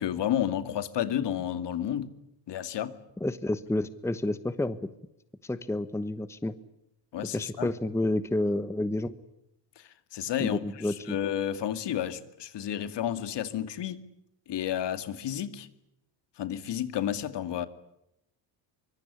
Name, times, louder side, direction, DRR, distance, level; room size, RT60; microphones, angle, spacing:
voice 1, 0.0-2.1 2.5-3.0 7.1-7.7 9.8-9.9 10.1-14.1 14.5-15.7 16.4-17.7, left 10 dB, 60° left, 2.2 m, -31 dB
voice 2, 3.2-4.8 5.4-6.5 7.3-9.1 10.4-11.2, left 1 dB, 5° left, 1.1 m, -30 dB
24.5 x 22.5 x 9.9 m
cardioid pair, 110°, 48 cm